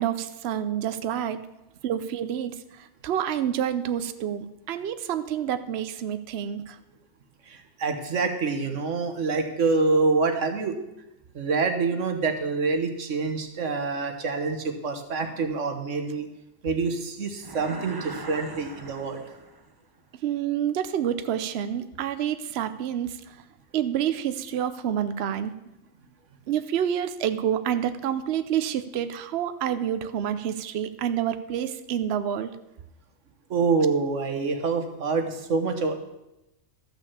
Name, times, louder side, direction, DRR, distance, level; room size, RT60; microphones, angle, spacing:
voice 1, 0.0-1.4 1.8-6.8 20.2-23.2 23.7-25.5 26.5-32.5, right 9 dB, 65° right, 11 dB, 0.9 m, -28 dB
voice 2, 7.5-10.8 11.3-16.3 16.6-19.2 33.5-35.9, right 4 dB, 80° right, 6 dB, 1.5 m, -26 dB
sound 1, 17.4-19.7, right 3 dB, 25° right, 0.7 m, -40 dB
13.0 x 5.9 x 7.1 m, 0.92 s
omnidirectional pair, 1.2 m